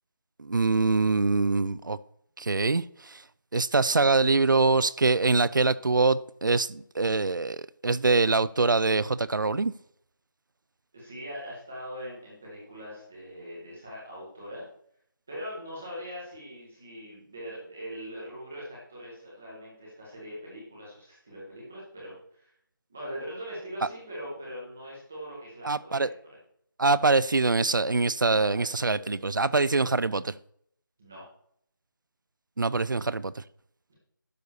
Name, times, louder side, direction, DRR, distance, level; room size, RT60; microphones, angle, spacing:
voice 1, 0.4-2.0 2.4-3.2 3.5-9.7 25.6-26.1 26.8-30.3 32.6-33.4, right 3 dB, 65° right, 0.5 m, -24 dB
voice 2, 10.9-14.6 15.3-22.5 22.9-26.1 28.2-29.1 29.4-29.9 31.0-31.2 33.9-34.0, equal, 5° right, 0.6 m, -41 dB
12.0 x 6.6 x 4.0 m
figure-of-eight pair, 180°, 11 cm